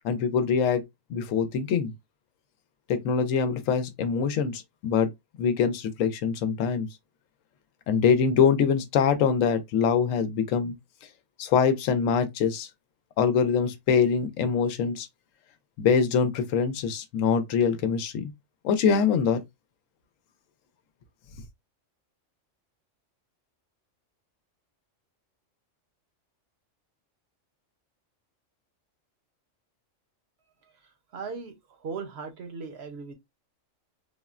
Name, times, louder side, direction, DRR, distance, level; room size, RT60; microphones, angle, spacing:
voice 1, 0.0-0.8 1.1-1.9 2.9-5.1 5.4-6.9 7.9-10.7 11.4-12.7 13.2-15.1 15.8-18.3 18.6-19.4, left 6 dB, 80° left, 1.0 m, -24 dB
voice 2, 31.1-33.1, right 5 dB, 60° right, 0.9 m, -38 dB
3.5 x 2.1 x 2.3 m
omnidirectional pair, 1.3 m